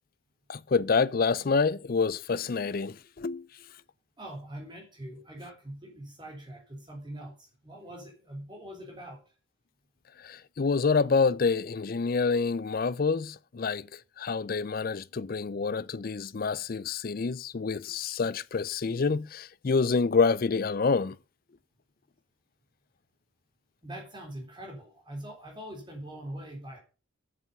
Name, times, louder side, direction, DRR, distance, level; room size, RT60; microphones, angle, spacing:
voice 1, 0.5-3.5 10.2-21.2, left 4 dB, 45° left, 0.4 m, -27 dB
voice 2, 4.2-9.2 23.8-26.8, right 1 dB, 20° right, 3.6 m, -43 dB
8.2 x 7.6 x 6.8 m
head